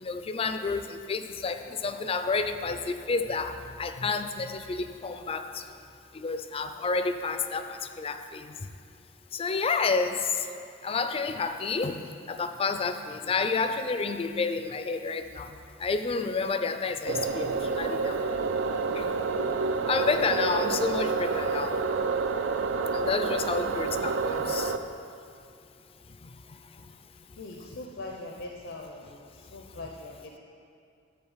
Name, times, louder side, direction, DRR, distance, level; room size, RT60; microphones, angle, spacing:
voice 1, 0.0-5.5 6.2-8.5 9.3-10.3 10.8-12.0 12.3-15.5 15.8-18.2 18.9-19.1 19.9-21.8 22.9-24.7, left 4 dB, 30° left, 9 dB, 0.4 m, -30 dB
sound 1, 17.1-24.8, right 4 dB, 80° right, 0.4 m, -28 dB
voice 2, 27.3-30.4, left 2 dB, 80° left, 1 dB, 0.7 m, -42 dB
10.5 x 4.2 x 7.2 m, 2.4 s
head